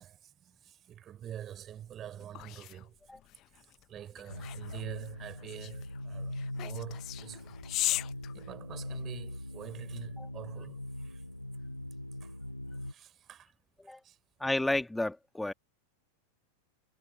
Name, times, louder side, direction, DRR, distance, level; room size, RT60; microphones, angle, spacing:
voice 1, 0.0-3.0 3.5-7.5 8.3-11.2 12.2-12.4 12.8-13.5 13.8-14.2, right 10 dB, 30° right, 3.8 m, -46 dB
sound 1, 1.7-9.2, left 16 dB, 35° left, 0.8 m, -39 dB
sound 2, 4.3-12.9, left 1 dB, 85° left, 0.6 m, -41 dB
voice 2, 14.4-15.5, left 2 dB, 5° left, 1.8 m, -31 dB
figure-of-eight pair, 90°, 0 cm